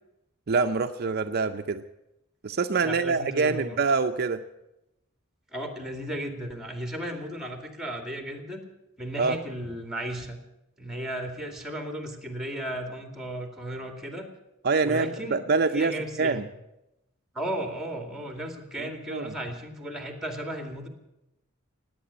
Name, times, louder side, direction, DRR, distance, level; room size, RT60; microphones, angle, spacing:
voice 1, 0.5-1.8 2.4-4.4 9.2-9.4 14.6-16.4 18.8-19.4, right 4 dB, 50° right, 7 dB, 0.6 m, -25 dB
voice 2, 2.8-3.8 5.5-8.6 9.0-10.4 10.8-14.3 14.8-15.4 15.7-16.5 17.3-20.9, right 1 dB, ahead, 5 dB, 2.4 m, -35 dB
18.5 x 9.2 x 8.6 m, 0.90 s
head